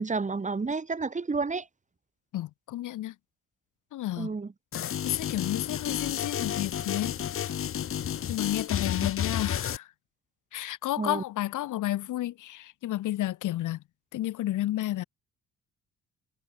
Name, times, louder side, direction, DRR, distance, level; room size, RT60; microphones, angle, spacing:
voice 1, 0.0-1.7 4.2-4.5 11.0-11.2, right 4 dB, 25° right, 2.5 m, -30 dB
voice 2, 2.3-3.1 3.9-4.3 5.0-7.2 8.3-9.9 10.5-13.8 14.1-15.0, left 14 dB, 85° left, 4.2 m, -31 dB
sound 1, 4.7-9.8, left 10 dB, 45° left, 0.8 m, -31 dB
cardioid pair, 90°, 30 cm